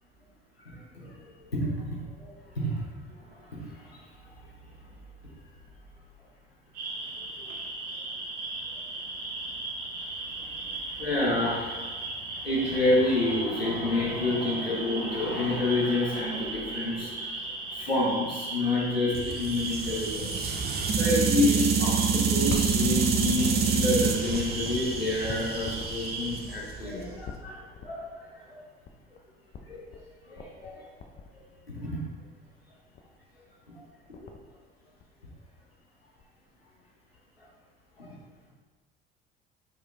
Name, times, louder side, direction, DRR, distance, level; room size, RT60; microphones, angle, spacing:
voice 1, 0.7-1.1 1.5-2.8 3.5-4.0 10.9-12.0 12.4-17.4 17.7-20.5 20.9-28.1 29.6-30.0 30.3-30.8 31.7-32.0 38.0-38.2, left 2 dB, 90° left, -5 dB, 1.2 m, -29 dB
sound 1, 6.7-26.3, right 2 dB, 55° right, 1.7 m, -37 dB
sound 2, 19.1-27.2, right 6 dB, 35° right, 0.8 m, -28 dB
sound 3, 22.3-27.9 28.8-28.9 29.2-29.3 29.5-30.0 30.4-30.7 31.0-31.9 32.4-32.6 33.0-33.2 33.6-33.7 33.9-34.5 35.0-35.8 36.2-36.3 37.2-37.3, left 5 dB, 35° left, 0.7 m, -40 dB
6.2 x 5.0 x 3.4 m, 1.3 s
figure-of-eight pair, 55°, 29 cm